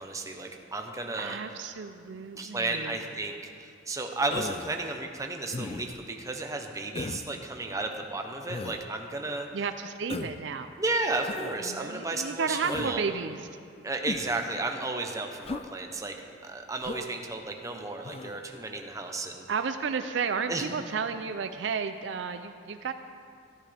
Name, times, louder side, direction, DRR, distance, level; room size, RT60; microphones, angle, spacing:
voice 1, 0.0-1.4 2.4-3.3 3.6-9.5 10.8-13.0 13.8-16.1 16.4-19.4 20.5-20.7, right 2 dB, 15° right, 3 dB, 0.8 m, -33 dB
voice 2, 1.2-3.0 9.5-10.7 11.6-13.5 19.5-22.9, right 5 dB, 65° right, 8 dB, 0.4 m, -32 dB
Human voice, 4.3-4.8 5.5-6.0 7.0-7.3 8.5-8.8 10.1-10.4 11.2-11.6 12.6-13.0 14.1-14.4 15.4-15.7 16.8-17.1 18.0-18.4, left 3 dB, 30° left, 0.4 m, -37 dB
14.0 x 12.0 x 3.4 m, 2.3 s
head